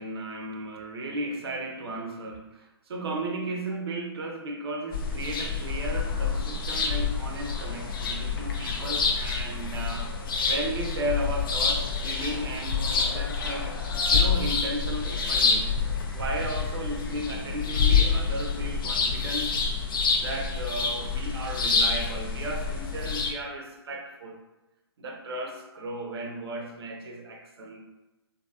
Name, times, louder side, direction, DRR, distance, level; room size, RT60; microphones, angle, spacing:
voice 1, 0.0-10.1 10.5-13.7 14.1-15.7 16.1-19.5 20.2-24.4 25.0-27.8, right 1 dB, 65° right, 2 dB, 0.6 m, -35 dB
sound 1, 4.9-23.3, left 5 dB, 55° left, 0.5 m, -27 dB
2.8 x 2.6 x 2.3 m, 1.0 s
hypercardioid pair, 140°, 14 cm